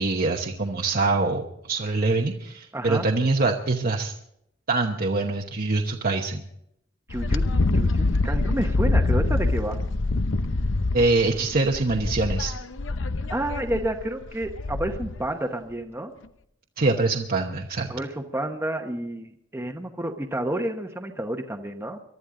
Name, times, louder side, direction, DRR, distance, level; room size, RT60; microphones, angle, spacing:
voice 1, 0.0-4.1 4.7-6.4 10.9-12.5 16.8-17.9, right 3 dB, 50° right, 2 dB, 1.1 m, -24 dB
voice 2, 2.7-3.1 7.1-7.4 7.7-9.8 13.3-16.1 17.9-22.0, right 1 dB, 10° right, 2 dB, 1.1 m, -30 dB
Wind, 7.1-15.3, left 2 dB, 70° left, 0.8 m, -25 dB
23.0 x 12.5 x 3.8 m, 0.73 s
head